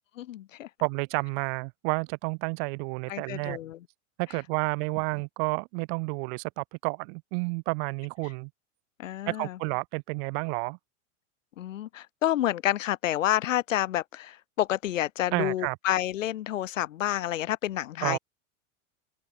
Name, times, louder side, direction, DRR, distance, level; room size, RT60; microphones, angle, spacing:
voice 1, 0.2-0.7 3.1-3.8 9.0-9.6 11.6-18.2, left 13 dB, 90° left, 5.6 m, -29 dB
voice 2, 0.8-3.6 4.2-8.5 9.3-10.8 15.3-15.8 18.0-18.2, right 38 dB, 55° right, 5.7 m, -30 dB
supercardioid pair, 130°, 37 cm